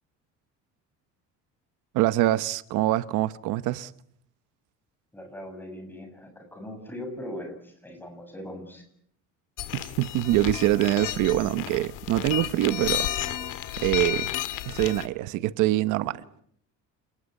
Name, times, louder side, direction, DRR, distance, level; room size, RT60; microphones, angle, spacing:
voice 1, 1.9-3.9 9.7-13.1 13.8-14.3 14.7-16.2, right 15 dB, 75° right, 1.0 m, -24 dB
voice 2, 5.1-8.8, left 1 dB, 5° left, 7.1 m, -40 dB
sound 1, 9.6-15.1, left 13 dB, 80° left, 1.9 m, -32 dB
28.5 x 20.0 x 8.9 m
cardioid pair, 175°, 31 cm